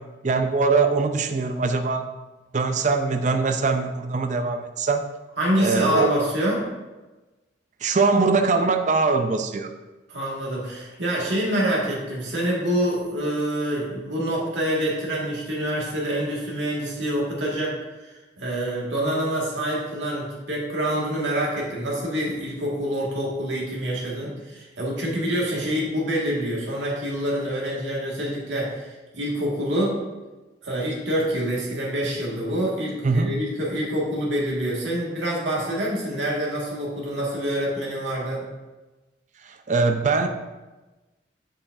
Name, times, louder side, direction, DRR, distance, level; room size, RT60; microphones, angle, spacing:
voice 1, 0.2-2.1 2.5-5.0 5.6-6.1 7.8-9.7 33.0-33.3 39.7-40.3, right 4 dB, 40° right, 7 dB, 0.5 m, -22 dB
voice 2, 5.4-6.7 10.1-17.8 18.0-30.0 30.6-38.5, right 1 dB, 85° right, -3 dB, 1.9 m, -26 dB
7.2 x 6.9 x 2.7 m, 1.2 s
head